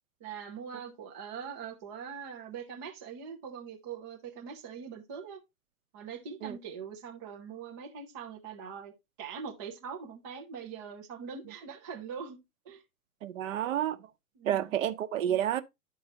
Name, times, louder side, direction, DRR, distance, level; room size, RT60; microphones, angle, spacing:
voice 1, 0.2-5.4 5.9-8.9 9.2-12.4 12.7-12.8 14.4-14.8, right 6 dB, 15° right, 0.3 m, -42 dB
voice 2, 13.2-14.1 14.4-15.6, right 11 dB, 55° right, 0.8 m, -30 dB
11.5 x 4.7 x 2.7 m
hypercardioid pair, 120°, 47 cm